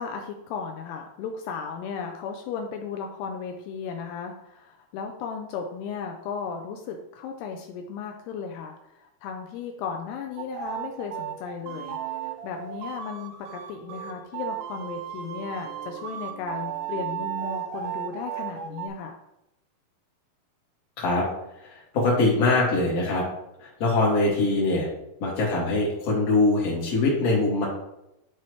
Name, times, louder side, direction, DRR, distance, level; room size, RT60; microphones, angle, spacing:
voice 1, 0.0-12.0 12.3-19.2, left 6 dB, 85° left, 3 dB, 2.6 m, -35 dB
sound 1, 10.4-18.9, right 10 dB, 90° right, 1.8 m, -35 dB
voice 2, 21.6-23.2 23.6-24.9 25.2-27.7, left 2 dB, 45° left, -5 dB, 2.9 m, -23 dB
11.0 x 4.1 x 3.2 m, 0.85 s
omnidirectional pair, 4.6 m